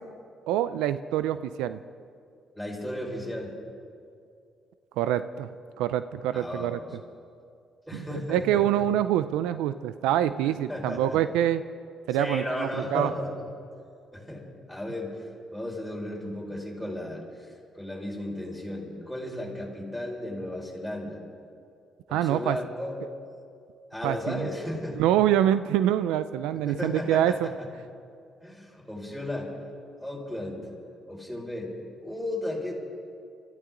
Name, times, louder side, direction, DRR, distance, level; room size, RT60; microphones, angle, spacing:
voice 1, 0.5-1.8 5.0-5.5 5.8-6.8 7.9-11.6 12.1-13.1 22.1-22.6 24.0-24.5 25.0-27.5, right 11 dB, 90° right, 13 dB, 0.4 m, -25 dB
voice 2, 2.5-3.5 6.3-6.9 7.9-8.8 10.4-11.2 12.1-13.3 14.1-14.4 14.7-15.1 15.5-17.5 17.7-21.2 22.1-23.0 23.9-25.0 26.7-27.5 28.4-29.5 30.0-30.7 31.1-31.7 32.0-32.7, left 1 dB, 5° left, -3 dB, 5.1 m, -34 dB
25.0 x 14.0 x 3.8 m, 2.4 s
supercardioid pair, 70°, 0 cm